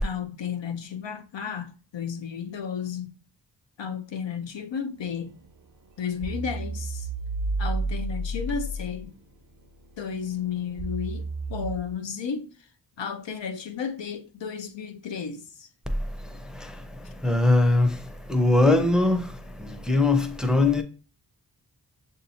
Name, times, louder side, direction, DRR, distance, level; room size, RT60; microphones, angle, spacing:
voice 1, 0.0-3.1 3.8-5.3 6.0-7.1 7.6-9.2 10.0-12.5 13.0-15.7, left 7 dB, 85° left, 0.6 m, -33 dB
sound 1, 5.0-5.6 6.2-9.1 9.4-11.8, right 2 dB, 50° right, 0.6 m, -31 dB
voice 2, 17.2-17.9 18.3-19.2 19.9-20.8, left 2 dB, ahead, 0.5 m, -20 dB
6.2 x 2.8 x 2.7 m
wide cardioid pair, 45°, 43 cm